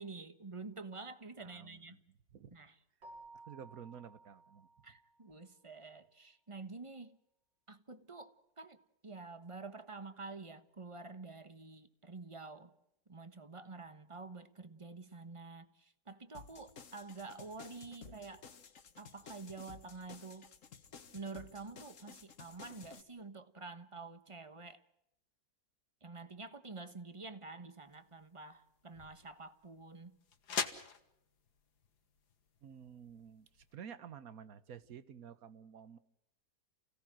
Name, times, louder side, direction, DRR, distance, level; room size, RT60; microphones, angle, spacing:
voice 1, 0.0-2.0 2.5-2.7 4.8-7.2 7.7-8.8 9.0-12.7 13.1-18.4 19.0-20.5 21.1-24.8 26.0-30.2, right 3 dB, 20° right, 0.9 m, -48 dB
voice 2, 1.4-2.5 3.3-4.7 32.6-36.0, right 8 dB, 55° right, 1.5 m, -52 dB
Keyboard (musical), 3.0-5.5, right 2 dB, 70° right, 5.8 m, -57 dB
sound 1, 16.3-23.0, left 6 dB, 45° left, 1.5 m, -55 dB
sound 2, 27.8-33.7, left 6 dB, 60° left, 1.9 m, -45 dB
29.5 x 17.0 x 7.6 m
omnidirectional pair, 2.0 m